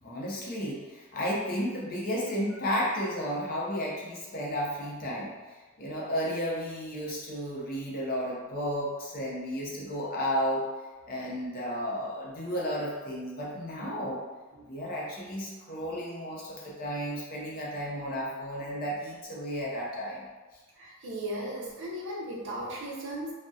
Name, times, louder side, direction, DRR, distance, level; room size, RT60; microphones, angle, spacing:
voice 1, 0.0-5.3 5.8-10.7 11.1-14.2 14.7-20.3, equal, 40° left, -4 dB, 0.5 m, -33 dB
voice 2, 20.8-23.3, right 1 dB, 60° right, -3 dB, 0.5 m, -36 dB
2.6 x 2.0 x 2.3 m, 1.3 s
head